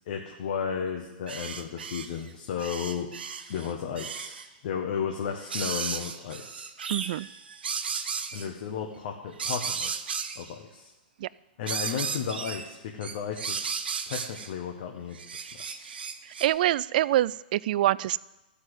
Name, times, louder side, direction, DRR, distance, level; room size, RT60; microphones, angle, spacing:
voice 1, 0.1-3.1 3.5-4.3 4.6-6.7 8.3-9.9 10.3-10.9 11.6-15.2 15.5-15.8, left 7 dB, 60° left, 2 dB, 1.4 m, -34 dB
sound 1, 1.3-2.3 2.6-4.5 5.4-8.5 9.4-10.5 11.7-12.7 13.0-14.5 15.1-16.5, right 6 dB, 90° right, 0.9 m, -34 dB
voice 2, 6.9-7.3 11.2-11.3 16.4-18.2, right 14 dB, 60° right, 20 dB, 0.3 m, -25 dB
13.0 x 5.7 x 8.1 m, 1.0 s
hypercardioid pair, 130°, 5 cm